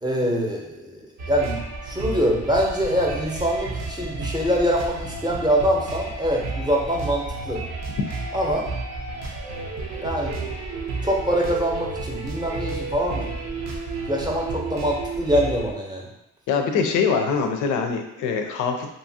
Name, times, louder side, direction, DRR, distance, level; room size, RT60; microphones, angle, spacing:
voice 1, 0.0-1.6 1.8-7.6 8.3-8.7 10.0-10.5 11.0-13.3 14.1-16.1, equal, 15° right, -2 dB, 0.6 m, -24 dB
sound 1, 1.2-15.7, right 3 dB, 65° right, 0.6 m, -32 dB
voice 2, 16.5-18.9, left 5 dB, 90° left, 5 dB, 0.5 m, -23 dB
2.8 x 2.4 x 2.7 m, 0.85 s
cardioid pair, 90°, 30 cm